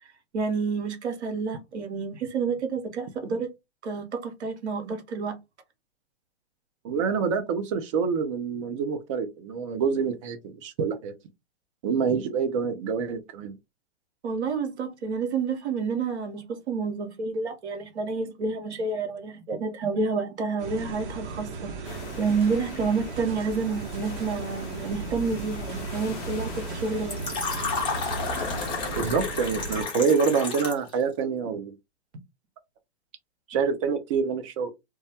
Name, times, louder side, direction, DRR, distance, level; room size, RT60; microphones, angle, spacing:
voice 1, 0.3-3.5 3.8-5.4 14.2-27.2, right 4 dB, 85° right, 0.8 m, -29 dB
voice 2, 6.8-11.1 11.8-13.5 29.0-31.7 33.5-34.7, right 6 dB, 30° right, 0.4 m, -26 dB
sound 1, 20.6-29.9, right 3 dB, 55° right, 0.9 m, -36 dB
sound 2, 21.8-29.0, left 3 dB, 35° left, 0.5 m, -40 dB
Fill (with liquid), 27.1-30.9, left 4 dB, 15° left, 0.8 m, -31 dB
2.2 x 2.1 x 2.7 m
hypercardioid pair, 130°, 33 cm